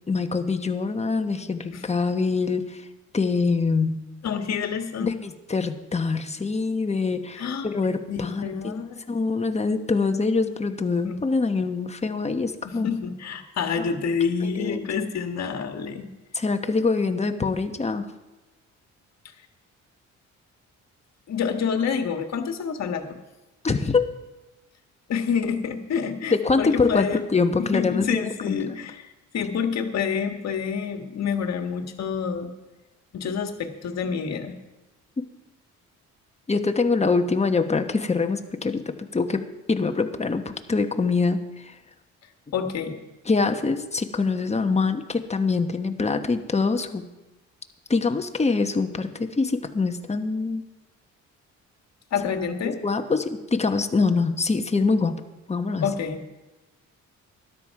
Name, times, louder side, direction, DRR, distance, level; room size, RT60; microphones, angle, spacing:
voice 1, 0.1-2.8 3.1-4.0 5.0-8.8 9.1-12.9 13.8-13.9 14.4-14.9 16.3-18.1 23.6-24.1 26.3-28.6 36.5-39.4 39.7-41.7 43.3-47.0 47.9-50.6 52.6-55.2 55.5-55.9, left 4 dB, 20° left, 6 dB, 1.1 m, -24 dB
voice 2, 4.2-5.1 7.4-7.7 8.1-9.0 11.0-11.2 12.6-16.1 21.3-23.2 25.1-27.2 27.6-32.5 33.1-34.6 42.5-43.0 52.1-52.8 55.8-56.2, left 6 dB, 60° left, 5 dB, 1.6 m, -28 dB
12.5 x 11.5 x 4.8 m, 1.1 s
cardioid pair, 90°, 30 cm